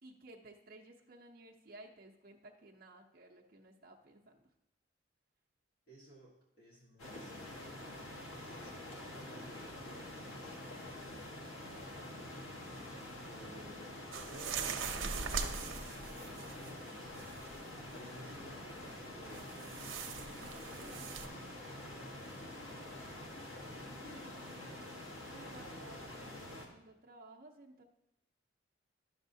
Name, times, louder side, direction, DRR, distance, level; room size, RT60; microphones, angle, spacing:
voice 1, 0.0-4.5 13.4-13.6 20.8-21.3 24.0-25.0 25.3-27.8, right 2 dB, 45° right, 0 dB, 0.6 m, -56 dB
voice 2, 5.9-7.7 8.1-12.1 13.3-14.0 14.2-17.1 17.7-19.8 20.4-22.8 23.6-24.4, right 1 dB, 50° left, -6 dB, 1.5 m, -57 dB
sound 1, 7.0-26.7, left 1 dB, 90° left, 1.2 m, -47 dB
sound 2, 14.1-16.8 17.1-17.8 19.3-21.3, right 6 dB, 85° right, 0.7 m, -41 dB
11.0 x 6.3 x 2.7 m, 0.89 s
head